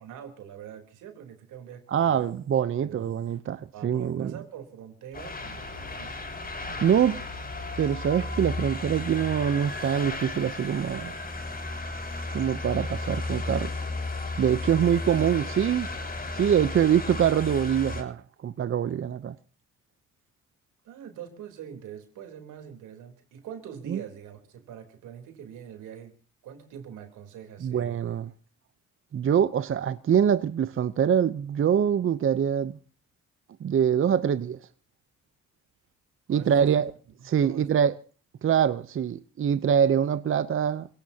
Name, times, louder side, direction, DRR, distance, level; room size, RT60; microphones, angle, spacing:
voice 1, 0.0-2.4 2.8-3.1 3.7-7.1 14.7-15.0 20.9-26.1 26.4-28.0 36.3-36.8 37.2-37.9, right 9 dB, 90° right, 3.6 m, -44 dB
voice 2, 1.9-4.3 6.8-7.2 7.8-11.1 12.3-13.7 14.4-15.9 16.3-19.4 23.9-24.0 27.6-28.3 29.1-32.8 33.6-34.6 36.3-36.9 37.2-38.0 38.4-40.9, right 8 dB, 45° right, 0.7 m, -24 dB
sound 1, 5.1-18.0, left 2 dB, 30° left, 6.1 m, -34 dB
28.0 x 17.0 x 2.8 m
cardioid pair, 90°, 30 cm